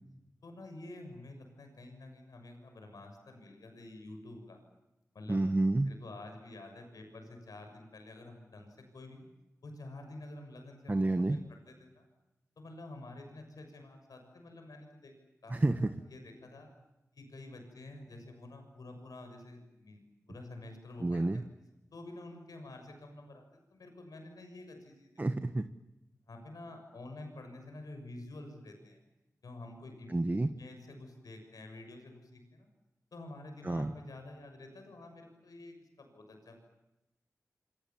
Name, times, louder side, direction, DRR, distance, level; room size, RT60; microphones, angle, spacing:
voice 1, 0.4-4.6 5.1-5.4 5.8-9.3 9.6-12.1 12.6-15.1 15.4-16.7 17.1-21.4 21.9-25.1 26.3-29.0 29.4-30.1 30.5-32.7 33.1-36.6, left 2 dB, 90° left, 5 dB, 6.8 m, -49 dB
voice 2, 5.3-5.9 10.9-11.4 15.5-15.9 21.0-21.4 25.2-25.7 30.1-30.5 33.6-33.9, right 2 dB, 30° right, 9 dB, 1.4 m, -29 dB
28.0 x 27.0 x 7.3 m, 0.95 s
wide cardioid pair, 65°, 6 cm